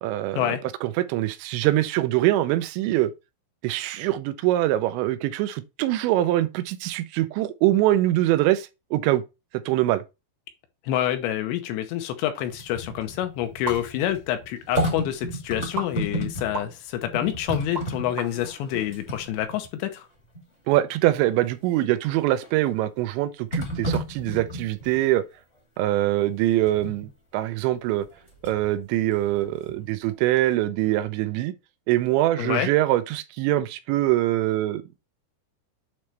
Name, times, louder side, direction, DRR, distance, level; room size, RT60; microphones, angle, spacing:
voice 1, 0.0-0.6 0.8-3.1 3.6-9.2 9.7-10.0 20.7-25.2 25.8-28.1 28.4-31.5 31.9-34.8, right 15 dB, 85° right, 2.9 m, -23 dB
voice 2, 10.9-20.1 32.4-32.7, left 12 dB, 80° left, 3.1 m, -27 dB
sound 1, 12.4-16.7 17.0-19.8 20.3-20.4 22.1-22.6 23.5-25.0 26.7-27.1 28.0-28.7 29.1-30.1 30.4-30.5, equal, 35° left, 1.1 m, -33 dB
sound 2, 13.6-14.3 14.7-15.0 15.7-16.7 17.2-18.3, right 3 dB, 50° right, 1.3 m, -31 dB
8.5 x 3.2 x 4.5 m
omnidirectional pair, 5.2 m